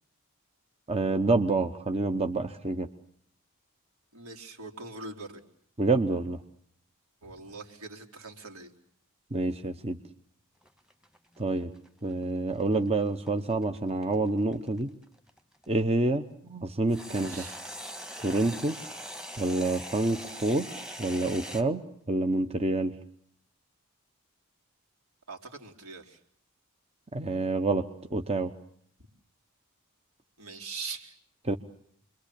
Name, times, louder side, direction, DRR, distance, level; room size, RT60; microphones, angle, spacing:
voice 1, 0.9-2.9 5.8-6.4 9.3-10.0 11.4-11.7 12.0-14.9 15.7-17.4 18.2-18.8 19.4-22.9 27.1-28.5 31.4-31.6, right 2 dB, 30° right, 7 dB, 1.1 m, -28 dB
voice 2, 4.1-5.4 7.2-8.7 17.1-17.6 25.3-26.2 30.4-31.2, right 4 dB, 70° right, 2 dB, 4.0 m, -42 dB
sound 1, 10.6-15.8 16.9-21.6, equal, 5° right, 1.6 m, -42 dB
29.0 x 23.0 x 8.6 m, 0.67 s
head